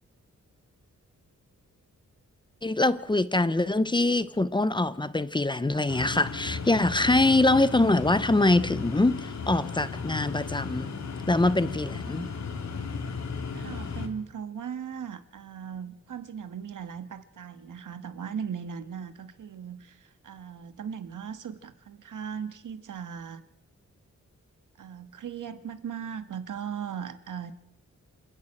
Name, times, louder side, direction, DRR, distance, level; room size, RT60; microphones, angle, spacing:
voice 1, 2.6-10.9 11.3-12.3, left 2 dB, 15° left, 0.7 m, -24 dB
sound 1, 5.9-14.1, left 5 dB, 60° left, 2.5 m, -35 dB
voice 2, 13.5-23.4 24.8-27.5, right 7 dB, 85° right, 1.5 m, -38 dB
28.0 x 11.0 x 8.9 m
wide cardioid pair, 170°, 30 cm